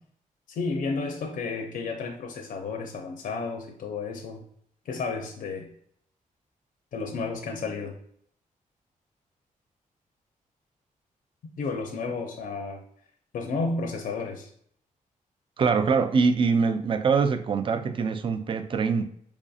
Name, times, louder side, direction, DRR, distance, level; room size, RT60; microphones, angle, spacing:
voice 1, 0.5-4.4 4.9-5.7 6.9-8.0 11.6-12.8 13.3-14.5, left 4 dB, 70° left, 2 dB, 0.5 m, -32 dB
voice 2, 15.6-19.1, right 5 dB, 35° right, 9 dB, 0.3 m, -23 dB
4.7 x 2.7 x 2.3 m, 0.66 s
wide cardioid pair, 130°, 14 cm